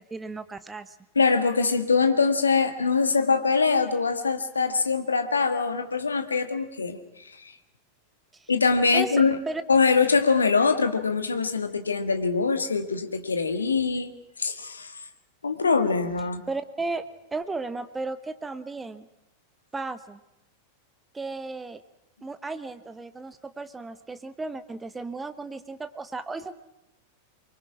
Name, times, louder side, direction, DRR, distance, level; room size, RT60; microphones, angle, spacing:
voice 1, 0.0-1.0 8.3-8.5 8.9-9.6 16.5-19.1 19.7-20.2 21.1-21.8 22.2-26.5, right 3 dB, 10° right, 12 dB, 1.0 m, -34 dB
voice 2, 1.1-7.0 8.5-9.4 9.7-14.1 14.4-14.9 15.4-16.4, left 4 dB, 75° left, 8 dB, 1.7 m, -23 dB
24.5 x 22.5 x 6.0 m, 0.92 s
figure-of-eight pair, 90°, 0 cm